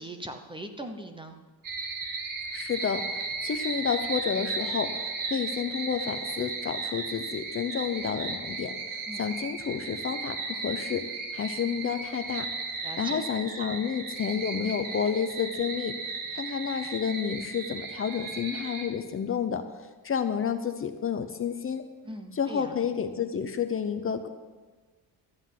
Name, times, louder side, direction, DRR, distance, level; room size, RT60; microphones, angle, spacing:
voice 1, 0.0-1.4 9.1-9.3 12.8-13.2 22.1-22.8, right 1 dB, 10° right, 6 dB, 0.8 m, -40 dB
sound 1, 1.6-18.9, right 4 dB, 55° right, 1.6 m, -35 dB
voice 2, 2.5-11.1 11.3-12.5 13.0-19.6 20.0-21.8 22.3-24.3, left 7 dB, 35° left, 7 dB, 0.7 m, -30 dB
13.0 x 7.9 x 7.4 m, 1.3 s
cardioid pair, 145°, 40 cm